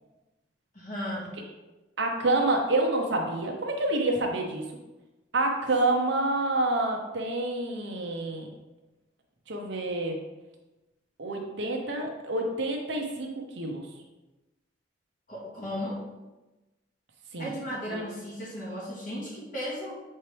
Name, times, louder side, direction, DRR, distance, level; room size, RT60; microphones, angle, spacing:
voice 1, 0.7-1.3 15.3-16.0 17.4-20.0, equal, 40° left, -6 dB, 2.1 m, -35 dB
voice 2, 2.0-4.7 5.3-8.5 9.5-10.2 11.2-13.8 17.3-17.5 17.9-18.0, right 2 dB, 65° right, 1 dB, 1.0 m, -28 dB
6.6 x 4.5 x 3.4 m, 1.1 s
head